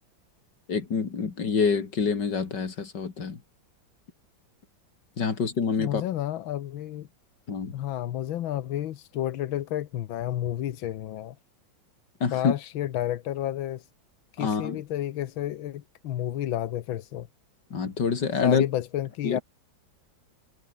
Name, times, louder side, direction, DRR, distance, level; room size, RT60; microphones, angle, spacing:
voice 1, 0.7-3.4 5.2-6.1 7.5-7.7 12.2-12.5 14.4-14.8 17.7-18.6 19.2-19.4, left 5 dB, 60° left, 3.2 m, -26 dB
voice 2, 5.8-7.1 7.7-11.4 12.3-13.9 14.3-17.3 18.4-19.4, left 12 dB, 85° left, 1.7 m, -31 dB
omnidirectional pair, 2.1 m